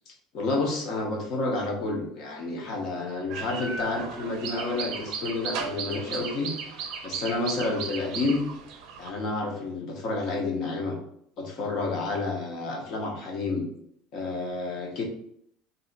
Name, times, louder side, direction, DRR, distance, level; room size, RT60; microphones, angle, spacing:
voice 1, 0.3-8.4 9.0-11.0 11.4-13.7 14.1-15.0, left 3 dB, 45° left, 0 dB, 0.9 m, -30 dB
sound 1, 3.3-9.1, right 6 dB, 55° right, 0.6 m, -36 dB
3.3 x 2.7 x 4.0 m, 0.70 s
cardioid pair, 160°, 0 cm